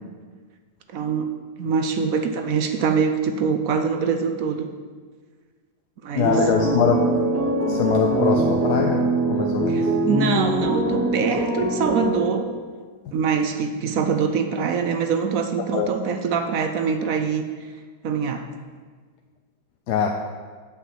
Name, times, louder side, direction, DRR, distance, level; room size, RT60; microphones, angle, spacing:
voice 1, 0.9-1.3 1.6-4.7 6.0-6.4 9.7-12.5 13.1-17.4 18.0-18.5, right 6 dB, 65° right, 7 dB, 1.0 m, -24 dB
voice 2, 6.1-7.0 7.4-9.0 9.3-9.8 15.7-15.9 19.9-20.1, left 6 dB, 80° left, 2 dB, 1.3 m, -23 dB
sound 1, 6.2-12.6, right 2 dB, 15° right, 0.7 m, -23 dB
8.5 x 5.7 x 7.3 m, 1.5 s
omnidirectional pair, 1.7 m